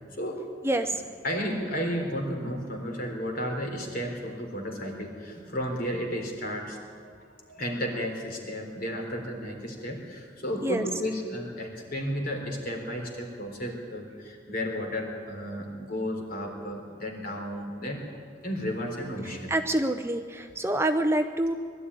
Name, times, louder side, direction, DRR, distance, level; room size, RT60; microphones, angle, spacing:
voice 1, 0.1-0.4 1.2-7.1 7.5-18.0 18.4-19.6, equal, 55° left, 2 dB, 3.9 m, -33 dB
voice 2, 19.5-21.5, right 1 dB, 15° right, 7 dB, 0.7 m, -26 dB
21.0 x 12.5 x 9.9 m, 2.2 s
head